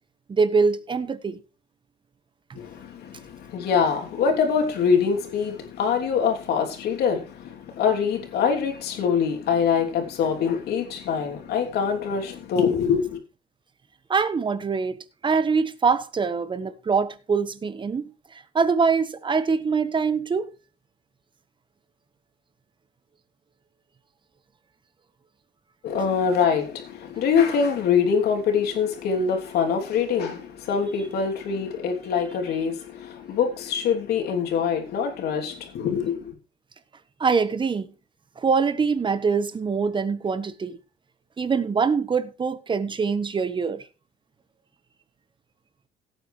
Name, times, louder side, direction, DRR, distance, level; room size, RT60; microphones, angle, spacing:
voice 1, 0.3-1.4 14.1-18.1 18.5-20.5 37.2-37.9 38.4-40.8 41.4-43.8, right 5 dB, 30° right, 1.3 m, -24 dB
voice 2, 2.5-13.2 25.8-36.3, left 6 dB, 70° left, 3.2 m, -24 dB
17.0 x 8.8 x 3.3 m
cardioid pair, 110°, 17 cm